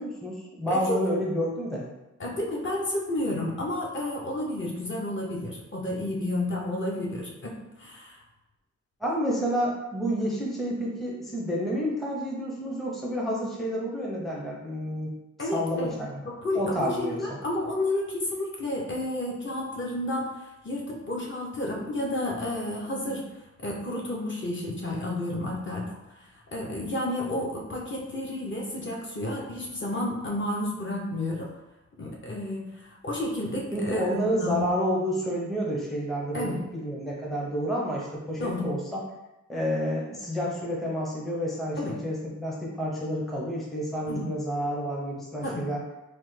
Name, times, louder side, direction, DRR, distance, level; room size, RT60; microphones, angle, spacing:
voice 1, 0.0-1.8 9.0-15.1 15.5-16.2 16.5-17.4 33.7-39.0 39.5-45.8, equal, ahead, -3 dB, 0.5 m, -29 dB
voice 2, 0.7-1.0 2.2-8.2 15.4-16.0 16.2-23.3 23.6-31.5 32.0-34.7 36.3-36.6 38.4-38.7 41.8-41.9 44.1-44.3 45.4-45.6, left 1 dB, 40° left, -3 dB, 0.6 m, -31 dB
3.2 x 2.0 x 3.1 m, 0.96 s
wide cardioid pair, 105°, 31 cm